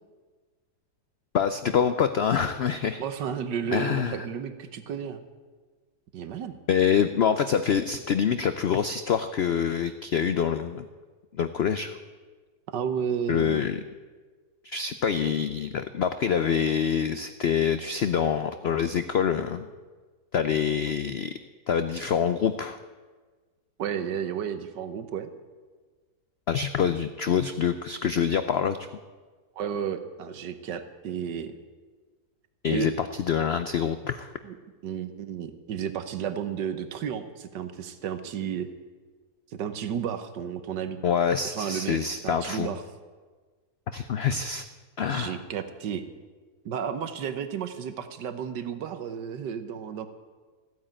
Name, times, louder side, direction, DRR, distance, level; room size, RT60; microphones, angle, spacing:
voice 1, 1.3-3.0 3.7-4.2 6.7-10.9 11.4-12.0 13.3-13.8 14.6-19.7 20.3-21.3 21.7-22.8 26.5-28.8 32.6-34.3 41.0-42.7 43.9-44.6 45.0-45.4, left 7 dB, 85° left, 10 dB, 0.5 m, -26 dB
voice 2, 3.0-5.2 6.1-6.5 12.7-13.6 17.1-17.2 23.8-25.3 29.6-31.6 32.7-32.9 34.4-34.6 34.8-38.7 39.5-41.0 41.4-42.0 42.2-42.8 45.1-46.0 46.6-50.1, right 8 dB, 80° right, 10 dB, 1.6 m, -32 dB
14.5 x 9.4 x 8.8 m, 1.4 s
omnidirectional pair, 1.8 m